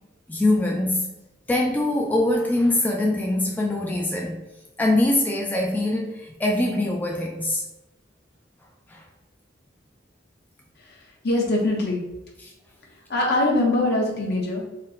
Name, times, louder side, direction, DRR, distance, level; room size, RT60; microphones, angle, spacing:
voice 1, 0.3-1.0 1.5-4.4 4.8-7.6 8.9-9.0 12.4-12.5, left 1 dB, 10° left, 0 dB, 0.3 m, -23 dB
voice 2, 10.8-12.0 13.1-14.6, left 2 dB, 60° left, -1 dB, 1.0 m, -23 dB
4.1 x 2.2 x 4.0 m, 0.96 s
head